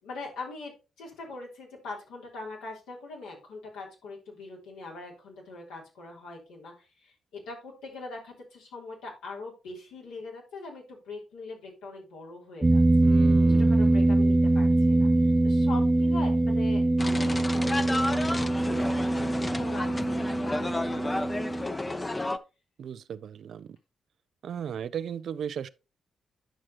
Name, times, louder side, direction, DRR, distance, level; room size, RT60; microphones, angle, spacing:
voice 1, 0.0-12.8 13.5-16.8 17.1-22.2, left 3 dB, 85° left, 3.4 m, -42 dB
sound 1, 12.6-21.7, right 2 dB, 30° right, 0.7 m, -23 dB
voice 2, 13.0-14.0 22.8-23.8 24.4-25.7, right 8 dB, 70° right, 0.5 m, -36 dB
sound 2, 17.0-22.4, left 2 dB, 20° left, 0.8 m, -32 dB
10.0 x 6.0 x 3.0 m
supercardioid pair, 45°, 0 cm